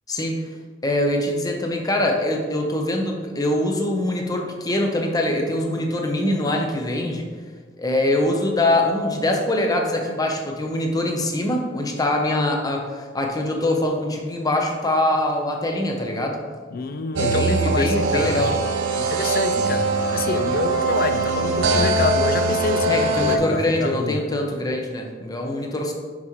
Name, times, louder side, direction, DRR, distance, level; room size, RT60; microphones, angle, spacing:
voice 1, 0.1-0.4 0.8-7.3 7.8-16.4 17.2-18.5 22.9-25.9, left 1 dB, 20° left, 2 dB, 0.7 m, -23 dB
voice 2, 16.7-18.6 18.9-24.2, left 3 dB, 50° left, 10 dB, 0.4 m, -27 dB
sound 1, 17.1-23.4, right 3 dB, 85° right, 0.6 m, -22 dB
sound 2, 19.5-21.4 22.4-23.9, right 1 dB, 30° right, 0.4 m, -36 dB
6.0 x 5.5 x 3.1 m, 1.5 s
head